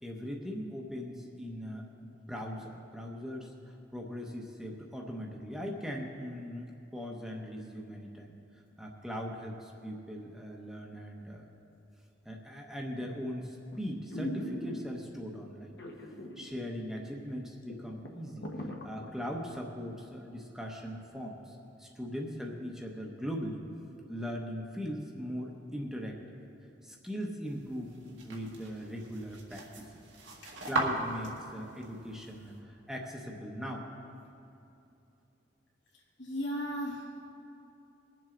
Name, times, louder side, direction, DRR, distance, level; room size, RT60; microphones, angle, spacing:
voice 1, 0.0-8.3 8.8-11.4 12.2-15.8 16.4-23.6 24.1-26.4 26.8-29.9 30.6-33.9, equal, ahead, -1 dB, 0.8 m, -40 dB
sound 1, 12.9-13.3 13.7-13.8 14.1-15.1 15.8-16.5 16.8-16.9 17.4-17.5 17.7-19.6 20.0-20.1, equal, 65° left, 1.2 m, -39 dB
sound 2, 27.5-32.6, right 2 dB, 85° right, 1.8 m, -39 dB
voice 2, 36.2-37.3, equal, 80° left, -3 dB, 2.5 m, -37 dB
21.5 x 7.5 x 3.8 m, 2.8 s
head